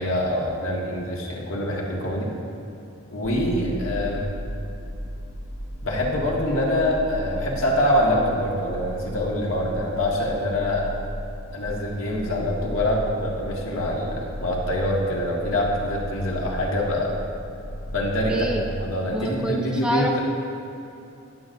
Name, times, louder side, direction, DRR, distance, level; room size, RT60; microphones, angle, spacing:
voice 1, 0.0-2.3 3.1-4.2 5.8-10.8 11.5-17.2 17.9-18.3 18.8-20.2, left 1 dB, 70° left, -3 dB, 1.9 m, -25 dB
sound 1, 3.2-18.8, equal, 85° left, 1.0 m, -36 dB
voice 2, 18.3-18.7 19.1-20.2, right 1 dB, 5° right, 0 dB, 0.5 m, -27 dB
16.5 x 7.8 x 2.7 m, 2.8 s
head